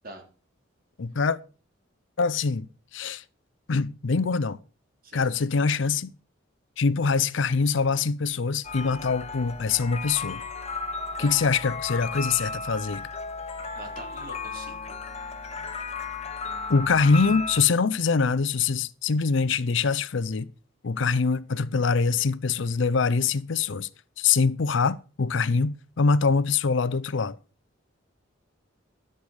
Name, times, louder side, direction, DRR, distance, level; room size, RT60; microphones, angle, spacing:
voice 1, 1.0-1.4 2.2-2.7 2.9-3.2 3.7-4.6 5.1-6.1 6.8-10.4 11.2-13.1 16.7-20.5 20.8-23.9 24.2-27.4, left 4 dB, 65° left, 0.5 m, -24 dB
sound 1, 8.6-17.6, left 4 dB, 30° left, 0.9 m, -35 dB
voice 2, 13.7-15.0, right 2 dB, 45° right, 3.2 m, -44 dB
11.5 x 6.8 x 6.4 m
head